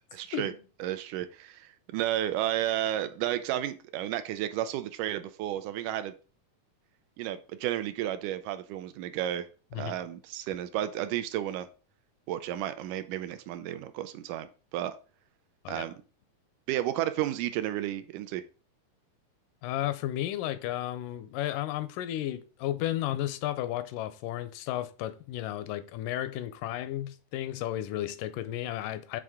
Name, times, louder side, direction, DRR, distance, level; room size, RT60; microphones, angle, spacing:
voice 1, 0.1-0.5 0.8-6.1 7.2-9.5 9.7-11.7 12.3-14.9 15.7-15.9 16.7-18.4, right 12 dB, 80° right, 2.0 m, -32 dB
voice 2, 19.6-29.2, left 13 dB, 85° left, 2.1 m, -33 dB
7.7 x 3.8 x 3.5 m
omnidirectional pair, 3.7 m